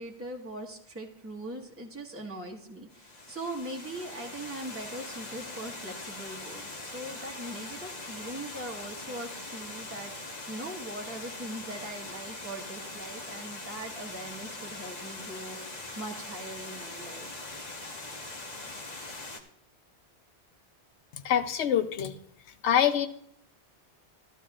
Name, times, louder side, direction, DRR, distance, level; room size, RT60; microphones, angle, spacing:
voice 1, 0.0-17.3, right 1 dB, 10° right, -1 dB, 1.3 m, -41 dB
Water, 2.9-19.4, left 2 dB, 40° left, 1.2 m, -42 dB
voice 2, 21.2-22.2 22.6-23.1, left 9 dB, 85° left, 9 dB, 0.9 m, -25 dB
14.0 x 12.5 x 2.4 m, 0.70 s
omnidirectional pair, 1.1 m